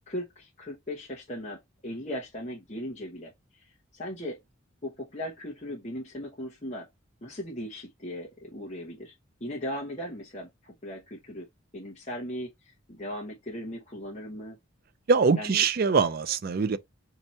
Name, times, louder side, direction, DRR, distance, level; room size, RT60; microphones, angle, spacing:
voice 1, 0.1-4.4 4.8-6.9 7.2-9.1 9.4-11.5 11.7-14.6 15.4-15.7, equal, 35° left, 1.0 m, -38 dB
voice 2, 15.1-16.8, right 5 dB, 45° right, 0.4 m, -23 dB
4.3 x 2.8 x 4.3 m
head